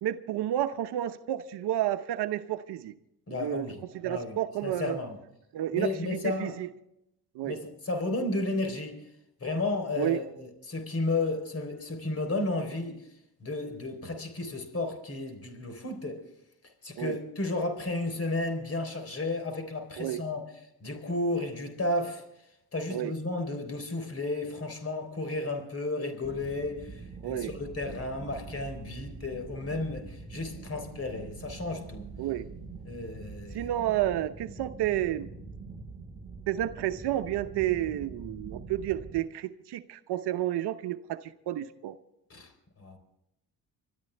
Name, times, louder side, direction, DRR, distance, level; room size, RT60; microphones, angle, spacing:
voice 1, 0.0-2.9 3.3-3.7 3.9-5.0 5.5-6.7 7.3-7.6 10.0-10.2 17.0-17.2 20.0-20.2 22.9-23.1 27.2-27.5 32.2-32.5 33.5-35.3 36.5-42.0, right 13 dB, 70° right, 9 dB, 0.9 m, -31 dB
voice 2, 3.3-5.2 5.7-6.5 7.4-9.0 9.4-13.1 13.4-16.2 16.8-20.4 20.8-22.2 22.7-32.0 32.8-33.7 42.3-42.5 42.8-43.0, left 2 dB, 35° left, 7 dB, 3.9 m, -33 dB
sound 1, 26.2-39.2, right 4 dB, 15° right, 2.2 m, -44 dB
25.5 x 13.0 x 3.4 m, 0.81 s
supercardioid pair, 75°, 42 cm